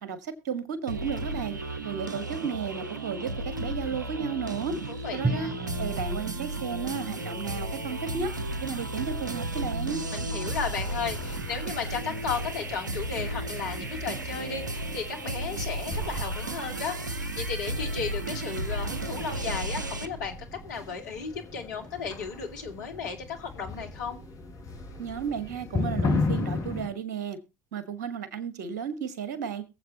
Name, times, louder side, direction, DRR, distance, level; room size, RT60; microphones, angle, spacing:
voice 1, 0.0-1.6 1.8-4.8 5.1-5.5 5.8-8.3 8.6-10.0 25.0-27.4 27.7-29.6, right 7 dB, 70° right, 12 dB, 1.6 m, -33 dB
sound 1, 0.9-20.1, right 1 dB, 85° right, 0.7 m, -34 dB
voice 2, 4.9-5.6 10.1-24.2, left 5 dB, 75° left, 4 dB, 2.3 m, -35 dB
Drum, 5.2-8.2, right 3 dB, 25° right, 1.3 m, -35 dB
sound 2, 10.4-26.9, left 3 dB, 35° left, 5.4 m, -36 dB
22.0 x 7.9 x 2.9 m, 0.28 s
figure-of-eight pair, 60°, 10 cm